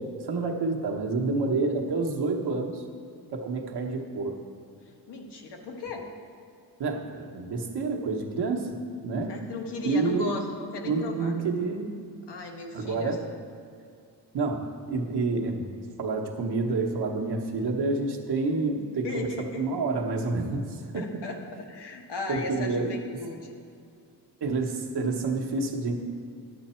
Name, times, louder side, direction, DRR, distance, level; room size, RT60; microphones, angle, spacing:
voice 1, 0.0-2.8 3.3-4.4 6.8-9.4 9.8-10.4 10.8-11.9 12.7-13.3 14.3-15.7 16.0-19.3 19.5-21.2 22.3-23.2 24.4-25.9, right 3 dB, 70° right, 2 dB, 1.1 m, -28 dB
voice 2, 5.1-6.1 9.3-11.3 12.3-13.1 19.0-19.6 20.9-21.4 21.7-23.5, left 3 dB, 80° left, 2 dB, 1.2 m, -36 dB
9.9 x 8.0 x 4.3 m, 2.3 s
wide cardioid pair, 155°, 41 cm